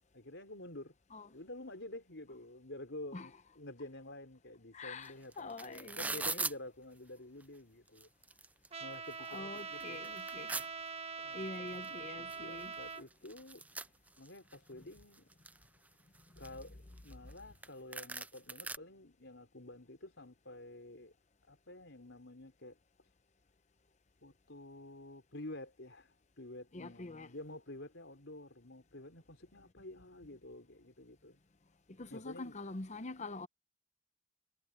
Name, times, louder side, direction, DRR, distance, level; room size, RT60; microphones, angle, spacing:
voice 1, 0.1-0.9 1.3-8.1 8.8-10.1 11.2-13.6 14.2-15.3 16.4-21.1 21.5-22.8 24.2-31.4 32.1-32.6, left 1 dB, 80° left, 4.4 m, -50 dB
voice 2, 4.7-6.3 9.3-10.5 11.3-12.7 26.7-27.3 32.0-33.5, left 2 dB, 40° left, 0.9 m, -45 dB
sound 1, 5.0-5.1 5.3-6.5 7.4-7.5 7.9-8.7 9.1-9.2 9.6-10.7 11.8-11.9 12.3-12.4 12.6-14.6 15.0-15.6 16.1-17.4 17.6-17.7 17.9-18.8, right 3 dB, 10° right, 0.3 m, -40 dB
Trumpet, 8.7-13.0, right 5 dB, 35° right, 1.5 m, -44 dB
head